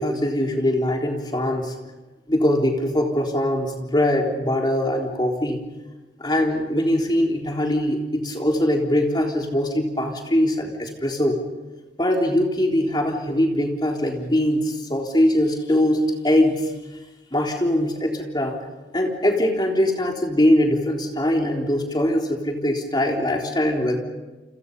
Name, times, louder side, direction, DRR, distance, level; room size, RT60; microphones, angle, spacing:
voice 1, 0.0-1.8 2.3-5.6 6.2-11.4 12.0-16.7 17.3-18.6 18.9-24.0, left 1 dB, 25° left, 1 dB, 3.7 m, -22 dB
30.0 x 26.5 x 5.5 m, 1.2 s
head